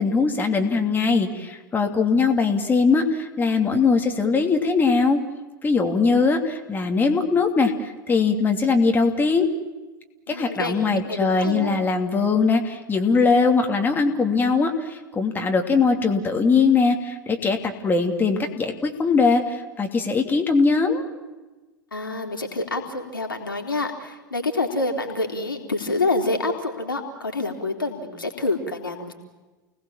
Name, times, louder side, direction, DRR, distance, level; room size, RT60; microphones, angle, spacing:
voice 1, 0.0-5.2 5.6-9.5 10.3-21.0, left 4 dB, 15° left, 3 dB, 3.0 m, -21 dB
voice 2, 10.3-10.8 11.0-11.7 21.9-29.1, left 2 dB, 85° left, 3 dB, 3.8 m, -27 dB
29.5 x 19.5 x 7.4 m, 1.2 s
figure-of-eight pair, 90°, 11 cm